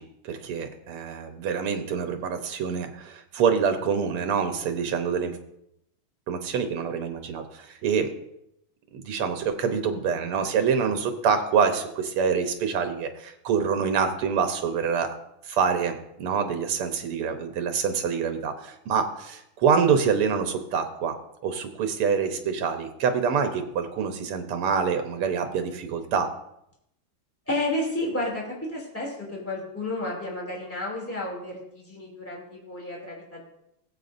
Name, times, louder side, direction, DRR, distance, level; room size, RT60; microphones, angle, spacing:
voice 1, 0.0-5.4 6.3-8.1 8.9-15.1 15.4-21.2 21.4-26.3, right 6 dB, 85° right, 7 dB, 1.9 m, -26 dB
voice 2, 27.5-33.5, left 1 dB, 5° left, -3 dB, 2.6 m, -31 dB
18.5 x 7.8 x 2.6 m, 0.82 s
omnidirectional pair, 2.4 m